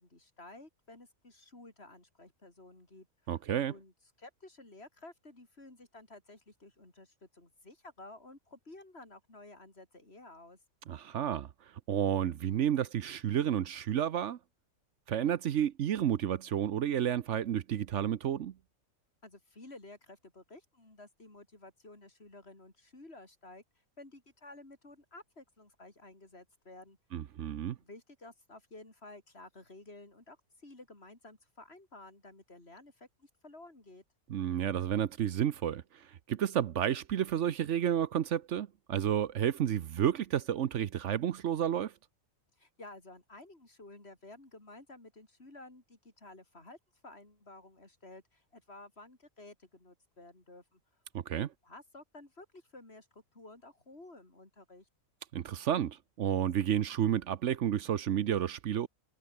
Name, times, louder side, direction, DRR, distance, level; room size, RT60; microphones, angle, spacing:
voice 1, 0.0-3.3 3.7-3.9 4.2-10.6 19.2-23.6 24.0-27.0 27.8-34.0 42.6-46.8 47.0-50.8 51.3-54.9, left 2 dB, 50° left, 5.3 m, -53 dB
voice 2, 3.3-3.7 10.9-11.5 11.9-14.4 15.1-18.5 27.1-27.8 34.3-41.9 51.1-51.5 55.3-58.9, right 10 dB, 65° right, 1.0 m, -31 dB
omnidirectional pair, 1.4 m